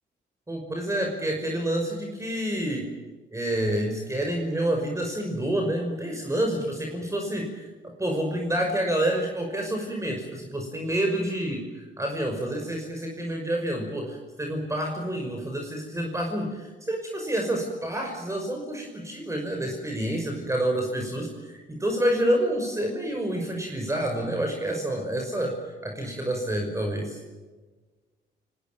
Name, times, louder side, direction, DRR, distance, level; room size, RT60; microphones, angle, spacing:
voice 1, 0.5-2.9 3.3-25.5 25.8-27.2, right 1 dB, 15° right, 2 dB, 5.7 m, -28 dB
29.5 x 20.0 x 7.7 m, 1.3 s
cardioid pair, 90°, 20 cm